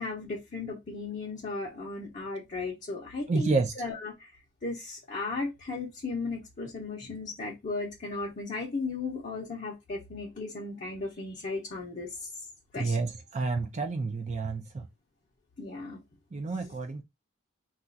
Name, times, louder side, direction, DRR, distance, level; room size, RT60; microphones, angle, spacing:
voice 1, 0.0-12.3 12.7-13.0 15.6-16.0 16.6-16.7, left 3 dB, 35° left, 0.7 m, -36 dB
voice 2, 3.3-3.7 12.8-14.9 16.3-17.0, right 3 dB, 30° right, 0.4 m, -29 dB
2.4 x 2.3 x 3.9 m
head